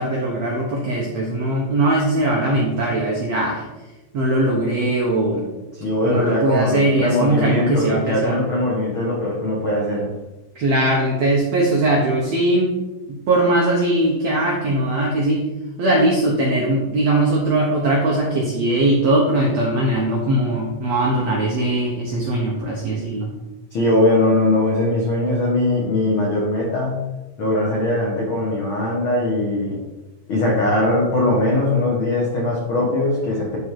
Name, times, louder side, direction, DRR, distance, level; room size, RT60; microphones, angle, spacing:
voice 1, 0.0-3.6 4.1-5.4 6.0-8.4 10.5-12.7 13.1-15.4 15.8-23.3, right 1 dB, 75° right, -2 dB, 1.5 m, -20 dB
voice 2, 5.7-10.1 23.7-27.0 27.4-29.8 30.3-33.6, left 1 dB, 85° left, -3 dB, 1.1 m, -20 dB
11.0 x 4.1 x 4.7 m, 1.1 s
omnidirectional pair, 4.6 m